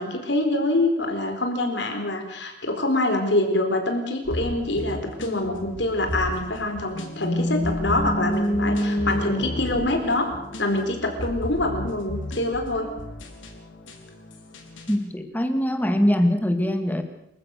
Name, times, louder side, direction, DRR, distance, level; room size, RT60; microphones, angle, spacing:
voice 1, 0.0-10.3 10.6-12.9, left 2 dB, 65° left, 5 dB, 4.4 m, -25 dB
sound 1, 4.2-15.0, left 1 dB, 85° left, 4.2 m, -35 dB
sound 2, 6.9-11.0, equal, 35° left, 3.9 m, -27 dB
voice 2, 14.9-17.0, equal, 10° left, 7 dB, 2.2 m, -22 dB
27.0 x 15.5 x 6.6 m, 0.80 s
head